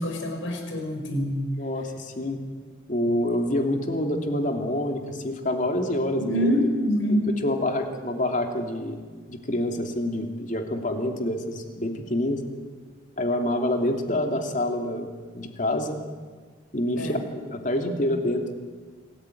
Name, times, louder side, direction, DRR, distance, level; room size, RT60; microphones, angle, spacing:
voice 1, 0.0-1.4 6.2-6.6 6.8-7.3 17.0-17.2, equal, 75° left, 4 dB, 5.6 m, -26 dB
voice 2, 1.6-2.4 2.9-6.5 7.1-9.0 9.3-12.4 13.2-15.1 15.3-16.0 16.7-18.5, left 1 dB, 40° left, 4 dB, 2.8 m, -27 dB
26.5 x 15.0 x 9.3 m, 1.5 s
head